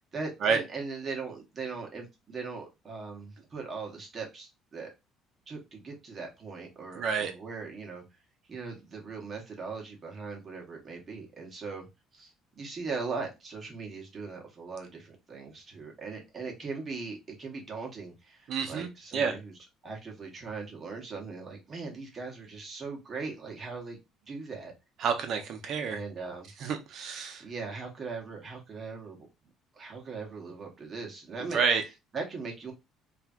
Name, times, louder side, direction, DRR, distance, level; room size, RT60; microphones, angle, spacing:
voice 1, 0.1-4.9 5.5-8.0 8.5-11.9 12.1-12.3 12.6-19.5 19.8-24.0 24.3-24.7 25.8-26.5 27.4-29.3 29.7-32.7, right 4 dB, 30° right, 1 dB, 1.0 m, -39 dB
voice 2, 7.0-7.3 18.5-19.3 25.0-26.0 26.6-27.4 31.5-31.8, right 6 dB, 50° right, 5 dB, 0.7 m, -29 dB
3.2 x 2.5 x 2.3 m, 0.24 s
cardioid pair, 140°, 0 cm